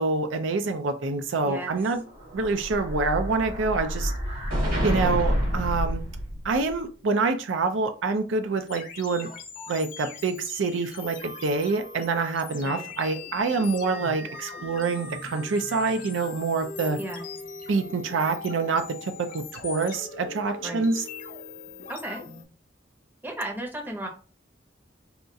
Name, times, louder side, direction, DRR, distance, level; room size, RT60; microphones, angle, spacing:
voice 1, 0.0-2.0 2.3-4.1 4.8-6.0 6.4-9.3 9.7-17.0 17.7-21.0, right 4 dB, 80° right, 8 dB, 0.4 m, -26 dB
voice 2, 1.4-1.8 12.6-12.9 17.0-17.2 20.6-20.9 21.9-22.2 23.2-24.1, right 1 dB, 10° right, 1 dB, 0.6 m, -34 dB
Explosion, 2.1-6.7, equal, 50° right, 1.3 m, -28 dB
sound 1, 8.7-22.4, left 4 dB, 45° left, 0.7 m, -40 dB
4.2 x 2.3 x 2.6 m, 0.36 s
head